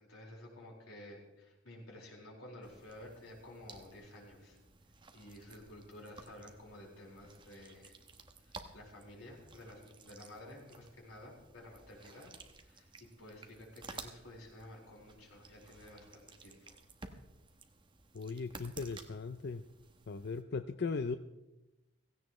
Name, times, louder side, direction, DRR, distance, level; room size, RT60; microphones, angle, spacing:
voice 1, 0.0-4.6 5.1-7.9 8.4-12.3 12.6-16.8, left 1 dB, 90° left, -2 dB, 4.6 m, -52 dB
sound 1, 2.6-20.4, right 3 dB, 25° right, 0.9 m, -55 dB
voice 2, 18.1-19.6 20.1-21.2, left 4 dB, 50° left, 10 dB, 0.5 m, -38 dB
16.5 x 16.0 x 3.1 m, 0.99 s
head